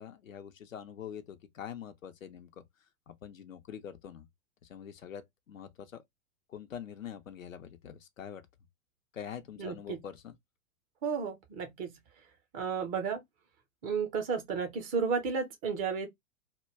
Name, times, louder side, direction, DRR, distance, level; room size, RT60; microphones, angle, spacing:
voice 1, 0.0-2.5 3.1-4.3 4.6-6.0 6.5-8.4 9.1-10.4, left 8 dB, 75° left, 0.6 m, -44 dB
voice 2, 9.6-10.0 11.0-11.9 12.5-13.2 13.8-16.1, right 6 dB, 20° right, 0.5 m, -32 dB
2.2 x 2.2 x 3.1 m
figure-of-eight pair, 100°, 40 cm